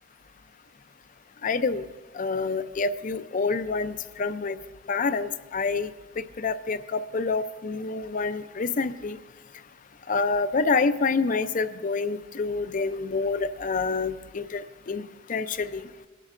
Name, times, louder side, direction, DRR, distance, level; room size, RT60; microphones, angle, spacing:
voice 1, 1.4-1.9 2.1-4.6 4.9-5.9 6.4-9.2 10.1-15.9, left 4 dB, 45° left, 12 dB, 0.5 m, -27 dB
22.0 x 11.5 x 2.6 m, 1.3 s
head